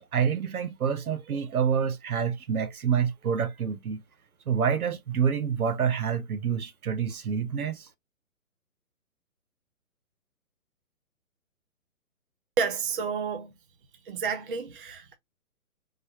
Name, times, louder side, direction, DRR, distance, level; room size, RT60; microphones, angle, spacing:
voice 1, 0.1-4.0 4.5-7.9, right 7 dB, 75° right, 1.1 m, -27 dB
voice 2, 12.6-13.5 14.1-15.2, right 5 dB, 35° right, 0.8 m, -30 dB
3.9 x 2.7 x 3.0 m
hypercardioid pair, 155°, 44 cm